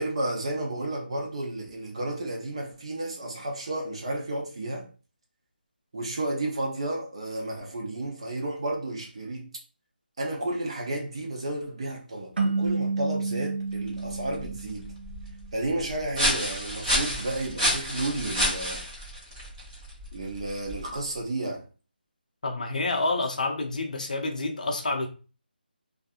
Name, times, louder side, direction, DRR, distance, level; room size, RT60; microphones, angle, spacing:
voice 1, 0.0-4.9 5.9-9.5 10.2-14.9 15.5-18.8 20.1-21.6, right 1 dB, 35° right, 0.6 m, -32 dB
sound 1, 12.4-15.5, right 4 dB, 75° right, 0.7 m, -30 dB
sound 2, 13.7-21.2, equal, 5° right, 0.8 m, -31 dB
voice 2, 22.4-25.1, left 2 dB, 50° left, 0.6 m, -28 dB
2.6 x 2.4 x 2.3 m
figure-of-eight pair, 175°, 6 cm